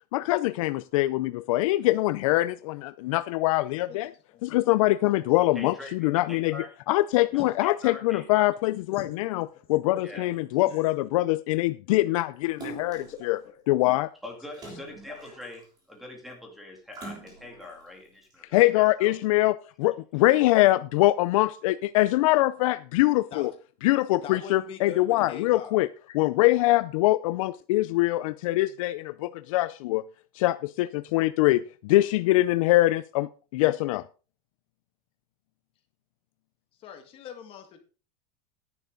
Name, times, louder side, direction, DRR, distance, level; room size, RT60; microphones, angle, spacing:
voice 1, 0.1-4.1 4.4-6.6 6.9-13.4 13.7-14.1 18.5-23.5 23.8-25.9 26.1-30.0 30.3-34.0, left 18 dB, 55° left, 14 dB, 0.5 m, -23 dB
voice 2, 5.5-6.7 7.3-8.5 10.0-10.3 14.2-19.1, left 2 dB, ahead, 2 dB, 2.3 m, -43 dB
Splash splatter, 12.6-13.2 14.5-15.8 16.9-17.7 18.3-18.4, right 3 dB, 20° right, 3.6 m, -43 dB
voice 3, 12.7-13.2 13.4-14.0 23.3-23.5 24.2-25.7 26.1-26.2 36.8-37.8, left 8 dB, 25° left, 5 dB, 1.8 m, -43 dB
11.5 x 10.5 x 3.9 m, 0.35 s
supercardioid pair, 180°, 20 cm